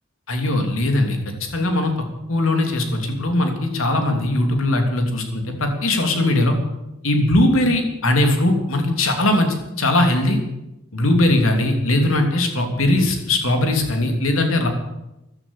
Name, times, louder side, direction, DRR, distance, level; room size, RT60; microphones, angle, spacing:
voice 1, 0.3-1.9 2.3-6.5 7.0-10.4 10.9-14.7, left 1 dB, 85° left, 4 dB, 3.1 m, -19 dB
14.5 x 11.5 x 8.3 m, 0.92 s
head